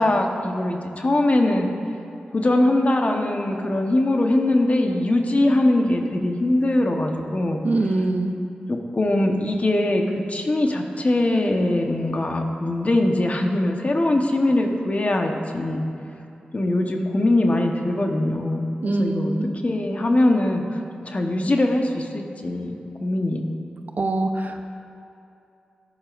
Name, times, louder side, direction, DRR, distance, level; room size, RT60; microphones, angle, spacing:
voice 1, 0.0-1.7 2.3-7.6 8.7-10.0 10.3-15.8 16.5-19.3 19.6-20.6 21.1-22.7 23.0-23.5, left 1 dB, 45° left, 3 dB, 1.1 m, -21 dB
voice 2, 7.6-8.3 18.8-19.5 24.0-24.6, right 2 dB, 55° right, 5 dB, 0.8 m, -23 dB
14.0 x 10.5 x 2.6 m, 2.7 s
cardioid pair, 45°, 3 cm